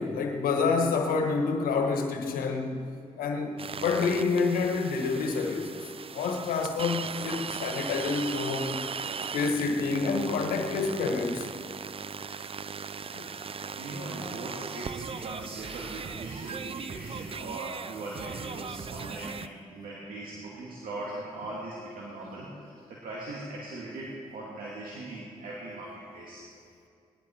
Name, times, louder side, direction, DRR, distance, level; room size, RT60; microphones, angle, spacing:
voice 1, 0.0-2.9 3.2-5.9 6.1-8.8 9.3-11.5 13.1-13.3, left 4 dB, 90° left, 4 dB, 1.4 m, -28 dB
sound 1, 3.6-19.5, right 6 dB, 40° right, 0.5 m, -38 dB
voice 2, 13.2-26.4, right 2 dB, 80° right, -4 dB, 2.1 m, -40 dB
19.0 x 11.5 x 4.4 m, 2.4 s
supercardioid pair, 50°, 14 cm